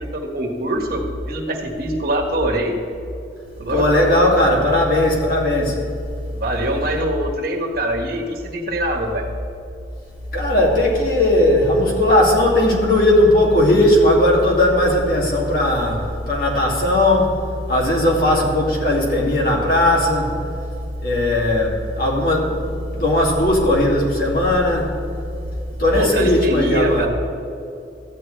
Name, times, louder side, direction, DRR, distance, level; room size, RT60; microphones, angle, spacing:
voice 1, 0.1-2.8 3.6-4.2 6.3-9.2 25.9-27.1, right 1 dB, 55° right, 1 dB, 1.5 m, -24 dB
voice 2, 3.7-5.8 10.3-17.4 17.7-20.4 21.0-24.9 25.8-27.1, left 1 dB, 55° left, -4 dB, 2.4 m, -17 dB
13.5 x 9.3 x 3.3 m, 2.7 s
head